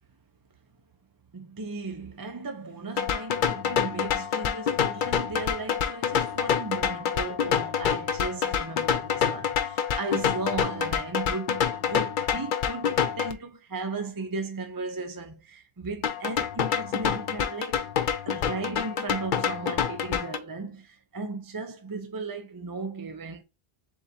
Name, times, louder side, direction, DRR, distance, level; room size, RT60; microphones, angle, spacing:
voice 1, 1.3-17.8 18.3-23.4, right 3 dB, 25° right, 0.5 m, -36 dB
sound 1, 3.0-13.3 16.0-20.4, left 8 dB, 60° left, 0.6 m, -27 dB
7.3 x 2.5 x 2.8 m
omnidirectional pair, 1.0 m